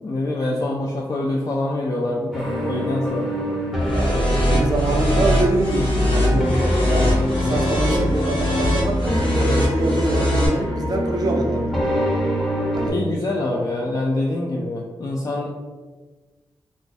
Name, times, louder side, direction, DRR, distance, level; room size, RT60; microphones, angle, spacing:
voice 1, 0.0-3.3 6.1-6.3 12.9-15.5, left 2 dB, 40° left, -3 dB, 0.4 m, -25 dB
sound 1, 2.3-12.9, equal, ahead, 0.6 m, -25 dB
sound 2, 3.8-10.5, left 1 dB, 75° left, 1.1 m, -22 dB
voice 2, 3.9-6.5 6.9-11.7 12.7-13.0, right 2 dB, 50° right, 1 dB, 0.5 m, -25 dB
2.6 x 2.5 x 3.8 m, 1.3 s
wide cardioid pair, 155°, 9 cm